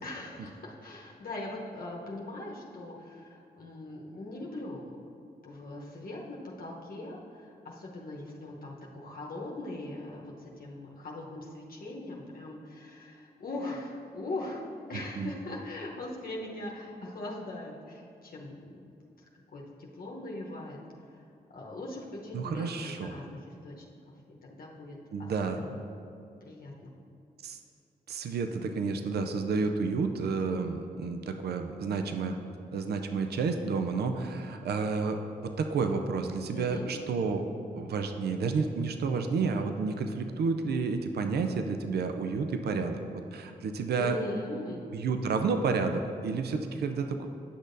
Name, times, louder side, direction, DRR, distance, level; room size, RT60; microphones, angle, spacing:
voice 1, 0.0-5.0 5.4-18.8 19.5-20.8 21.5-23.8 24.4-25.3 25.6-25.8 26.5-26.9 36.5-36.9 44.0-44.9, left 2 dB, 60° left, -3 dB, 1.0 m, -40 dB
voice 2, 14.9-15.3 22.3-23.1 25.1-25.6 27.4-27.6 28.1-32.4 32.7-37.4 37.7-44.2 44.9-47.3, right 4 dB, 75° right, 6 dB, 0.5 m, -30 dB
10.0 x 6.3 x 2.6 m, 2.5 s
supercardioid pair, 40°, 17 cm